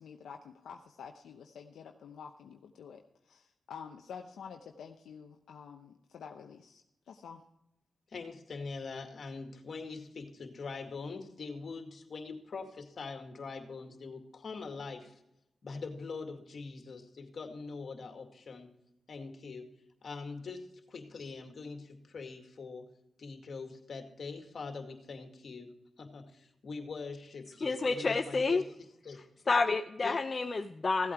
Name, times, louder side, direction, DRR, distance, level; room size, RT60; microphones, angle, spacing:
voice 1, 0.0-6.8 7.1-7.4, left 6 dB, 85° left, 4 dB, 0.8 m, -49 dB
voice 2, 8.1-15.2 15.6-18.7 19.1-22.9 23.2-28.6 29.0-29.2 30.0-30.2, left 4 dB, 65° left, 4 dB, 2.2 m, -43 dB
voice 3, 27.6-28.6 29.5-31.1, left 3 dB, 50° left, 7 dB, 0.7 m, -29 dB
16.0 x 8.4 x 4.6 m, 0.84 s
supercardioid pair, 45°, 0 cm